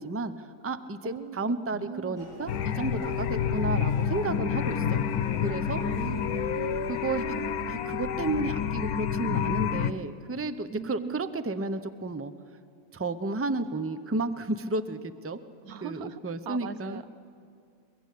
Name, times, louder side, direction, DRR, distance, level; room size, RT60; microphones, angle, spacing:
voice 1, 0.0-5.0 5.4-5.8 6.9-7.2 7.7-12.3 12.9-15.4 15.8-17.1, right 2 dB, 20° right, 11 dB, 0.4 m, -32 dB
voice 2, 1.0-1.4 1.7-2.2 5.8-6.7 10.7-11.3 15.6-17.1, right 7 dB, 80° right, 12 dB, 1.3 m, -40 dB
Human voice, 2.2-7.4, equal, 65° right, 6.1 m, -45 dB
sound 1, 2.5-9.9, left 8 dB, 80° left, 1.3 m, -29 dB
23.0 x 22.5 x 8.5 m, 2.4 s
omnidirectional pair, 1.5 m